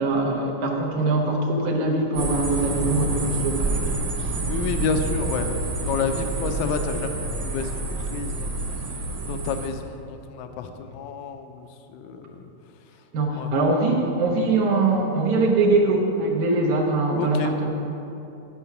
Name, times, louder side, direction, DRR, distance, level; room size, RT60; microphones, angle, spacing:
voice 1, 0.0-3.9 13.1-17.7, right 2 dB, 85° right, -1 dB, 2.7 m, -22 dB
sound 1, 2.1-9.7, right 2 dB, 50° right, 1.5 m, -28 dB
voice 2, 4.5-7.7 8.0-9.0 9.3-12.4 13.4-13.5 17.2-17.5, left 5 dB, 80° left, 6 dB, 2.0 m, -30 dB
12.5 x 6.0 x 5.7 m, 2.8 s
omnidirectional pair, 3.3 m